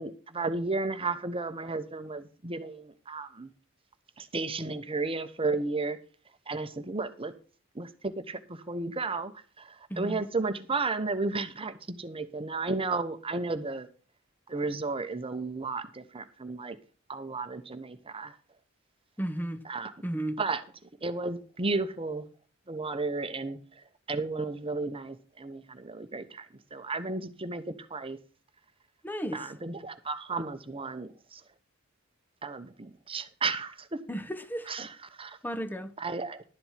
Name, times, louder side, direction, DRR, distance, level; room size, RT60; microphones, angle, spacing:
voice 1, 0.0-3.5 4.2-6.0 6.5-7.3 7.7-9.3 9.6-13.9 14.5-16.8 17.1-18.3 19.7-19.9 20.4-20.6 21.0-22.3 22.7-23.6 24.1-26.5 26.7-28.2 29.3-31.4 32.4-34.0 34.7-35.4 36.0-36.4, right 3 dB, 25° right, 1.0 m, -33 dB
voice 2, 9.9-10.2 19.2-19.6 20.0-20.4 29.0-29.5 34.1-34.7 35.4-35.9, right 1 dB, 10° left, 1.0 m, -34 dB
12.0 x 7.8 x 5.8 m
head